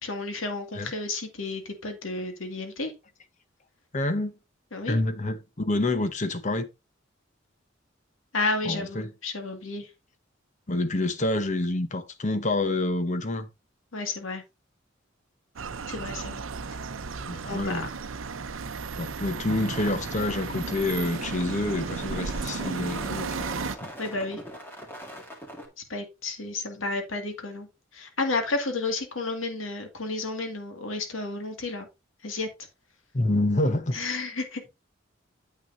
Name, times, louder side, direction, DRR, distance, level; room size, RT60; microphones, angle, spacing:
voice 1, 0.0-2.9 4.7-5.0 8.3-9.9 13.9-14.4 15.9-16.4 17.4-17.9 22.6-22.9 24.0-24.4 25.9-27.7 27.9-31.9 32.2-32.5 33.9-34.7, left 3 dB, 90° left, 2.1 m, -32 dB
voice 2, 3.9-4.3 4.9-6.7 8.7-9.1 10.7-13.5 17.3-17.9 19.0-23.8 33.1-34.0, left 2 dB, 40° left, 0.9 m, -27 dB
sound 1, 15.6-23.8, right 4 dB, 90° right, 0.7 m, -34 dB
sound 2, 19.5-25.7, equal, 10° left, 2.1 m, -42 dB
9.2 x 8.1 x 2.7 m
head